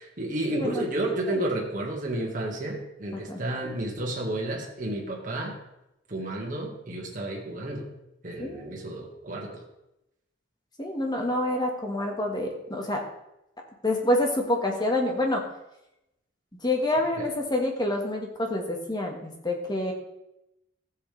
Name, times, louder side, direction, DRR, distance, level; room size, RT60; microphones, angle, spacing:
voice 1, 0.0-5.5 6.1-7.9 8.2-9.6 17.2-17.3, right 1 dB, 40° right, -1 dB, 1.8 m, -31 dB
voice 2, 8.4-8.7 10.8-13.0 13.8-15.4 16.6-19.9, left 1 dB, 20° left, 1 dB, 1.5 m, -27 dB
14.0 x 7.7 x 3.3 m, 0.88 s
head